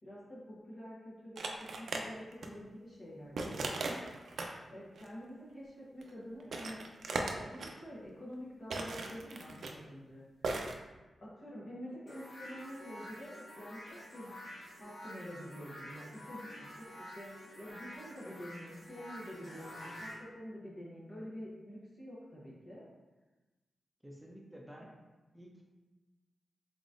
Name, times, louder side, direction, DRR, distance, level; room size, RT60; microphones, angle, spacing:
voice 1, 0.0-4.0 4.7-6.8 7.4-10.2 11.2-14.5 14.8-22.8 24.8-24.9, equal, 45° left, -7 dB, 1.0 m, -47 dB
sound 1, 1.4-2.0 2.3-2.5 3.4-4.6 5.0-5.1 6.0-6.1 6.4-7.7 8.7-9.8 10.4-10.7, right 3 dB, 70° right, 0.4 m, -38 dB
sound 2, 12.1-20.1, left 1 dB, 65° left, 1.5 m, -49 dB
voice 2, 24.0-24.9 25.3-25.6, equal, 5° right, -1 dB, 0.6 m, -51 dB
3.8 x 3.8 x 2.5 m, 1.2 s
wide cardioid pair, 130°, 0 cm